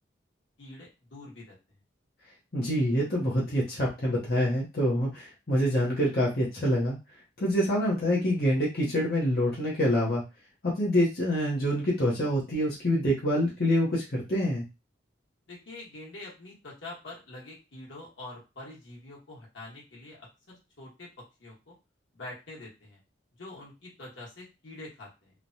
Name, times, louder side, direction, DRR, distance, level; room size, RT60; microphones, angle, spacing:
voice 1, 0.6-1.6 15.5-21.7 22.1-23.0 23.4-25.3, left 2 dB, 85° left, -4 dB, 1.3 m, -45 dB
voice 2, 2.5-7.0 7.4-10.2 10.6-14.6, equal, 55° left, -5 dB, 0.8 m, -26 dB
3.1 x 2.2 x 2.6 m, 0.28 s
head